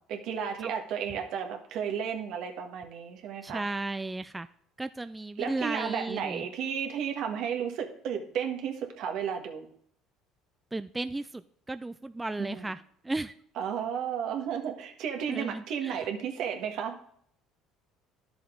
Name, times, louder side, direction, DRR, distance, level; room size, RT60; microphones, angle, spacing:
voice 1, 0.1-3.6 5.4-9.7 12.4-12.7 13.6-16.9, right 7 dB, 65° right, 3 dB, 1.5 m, -33 dB
voice 2, 3.4-4.5 4.8-6.5 10.7-11.4 11.7-13.3 15.3-16.1, right 2 dB, 15° right, 12 dB, 0.3 m, -34 dB
11.0 x 6.9 x 3.8 m, 0.64 s
supercardioid pair, 85°, 0 cm